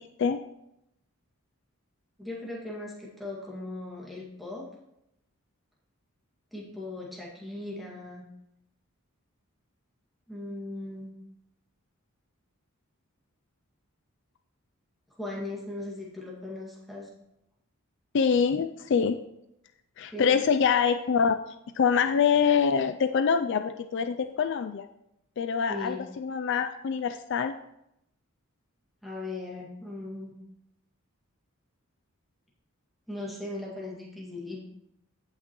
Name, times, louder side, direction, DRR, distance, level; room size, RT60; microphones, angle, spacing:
voice 1, 2.2-4.6 6.5-8.2 10.3-11.1 15.2-17.1 20.1-20.3 25.7-26.0 29.0-30.3 33.1-34.7, left 2 dB, ahead, -4 dB, 2.0 m, -38 dB
voice 2, 18.1-19.2 20.0-21.4 21.8-24.9 25.4-27.5, left 6 dB, 55° left, 8 dB, 0.3 m, -25 dB
15.5 x 5.9 x 3.0 m, 0.84 s
head